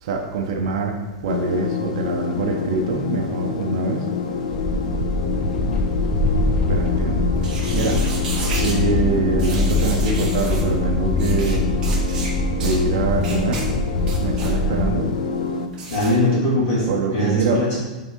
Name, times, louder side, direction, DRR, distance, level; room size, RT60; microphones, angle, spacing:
voice 1, 0.0-4.1 6.7-7.3 7.7-8.1 8.6-11.7 12.6-13.7 14.2-15.1 16.9-17.6, right 4 dB, 50° right, 2 dB, 0.7 m, -24 dB
sound 1, 1.3-15.7, left 5 dB, 75° left, 0.5 m, -27 dB
sound 2, 4.5-14.9, left 2 dB, 15° left, 0.5 m, -23 dB
sound 3, 7.4-8.8 9.4-10.6 11.2-11.6 11.8-12.3 12.6-12.8 13.2-13.7 14.0-14.5 15.7-16.1, right 3 dB, 20° right, 1.1 m, -32 dB
voice 2, 15.9-17.8, left 1 dB, 30° left, -6 dB, 2.0 m, -20 dB
7.9 x 3.7 x 3.6 m, 1.1 s
supercardioid pair, 180°, 4 cm